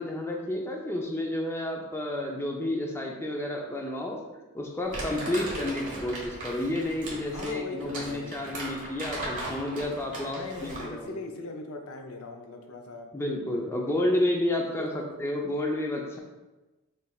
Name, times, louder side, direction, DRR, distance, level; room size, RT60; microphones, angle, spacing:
voice 1, 0.0-4.2 4.5-11.2 13.1-16.2, left 1 dB, 10° left, 0 dB, 0.5 m, -30 dB
Crumpling crinkling, 4.9-11.0, right 1 dB, 35° right, 1.5 m, -37 dB
voice 2, 5.2-5.6 7.3-8.8 10.3-13.1 13.6-13.8 14.8-15.1, left 2 dB, 75° left, 4 dB, 0.6 m, -41 dB
6.6 x 3.3 x 2.3 m, 1.1 s
head